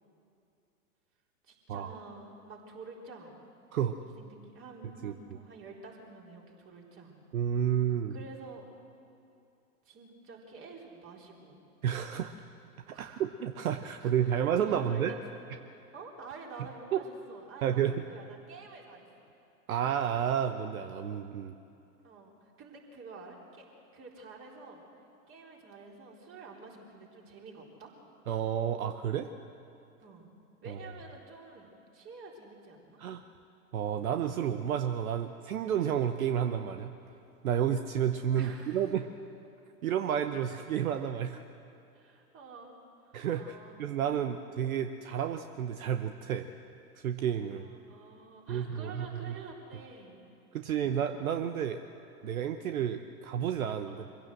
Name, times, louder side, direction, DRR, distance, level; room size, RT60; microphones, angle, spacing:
voice 1, 1.4-3.3 3.9-7.2 8.1-8.6 9.8-11.6 12.9-13.2 13.8-15.2 15.9-19.1 22.0-23.6 23.9-24.8 25.3-27.9 30.0-30.3 30.6-33.0 38.3-38.9 41.9-44.1 47.5-50.2 53.9-54.1, right 3 dB, 30° right, -1 dB, 4.1 m, -49 dB
voice 2, 7.3-8.1 11.8-12.3 12.9-15.1 16.9-17.0 17.6-17.9 19.7-21.5 28.3-29.3 30.7-30.8 33.0-33.2 33.7-36.9 37.4-39.1 39.8-41.4 43.1-46.5 47.0-47.7 48.5-49.3 50.5-51.8 52.2-54.0, right 9 dB, 65° right, 8 dB, 1.0 m, -31 dB
24.0 x 16.0 x 7.7 m, 2.7 s
figure-of-eight pair, 105°, 45 cm